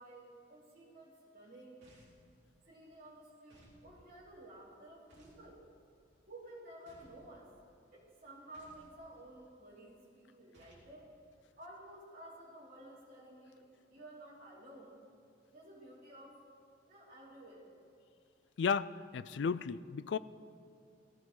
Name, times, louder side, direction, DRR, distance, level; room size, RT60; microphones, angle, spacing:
voice 1, 0.0-1.9 2.6-5.6 6.3-7.5 7.9-11.2 11.6-15.0 15.5-16.4 16.9-17.7, right 1 dB, 50° right, -7 dB, 4.0 m, -53 dB
sound 1, 1.8-2.3 3.5-3.8 5.1-5.5 6.9-7.2 8.5-8.9 10.5-10.9, right 1 dB, 65° right, 3.3 m, -62 dB
voice 2, 18.6-20.2, left 6 dB, 75° left, 16 dB, 0.4 m, -34 dB
19.0 x 13.5 x 3.9 m, 2.3 s
head